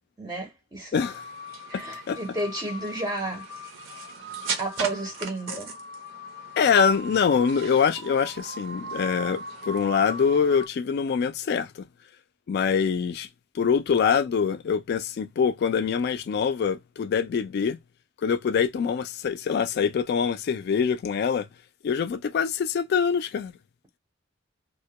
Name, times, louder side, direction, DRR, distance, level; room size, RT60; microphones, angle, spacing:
voice 1, 0.2-1.0 1.7-3.5 4.6-5.7, right 2 dB, 15° right, 0.6 m, -32 dB
voice 2, 0.9-1.2 1.7-1.8 2.1-2.2 6.6-11.8 12.5-13.3 13.5-17.8 18.2-21.5 21.8-23.5, left 6 dB, 55° left, 0.3 m, -24 dB
sound 1, 1.0-10.7, right 3 dB, 75° right, 0.7 m, -37 dB
2.1 x 2.1 x 2.7 m
head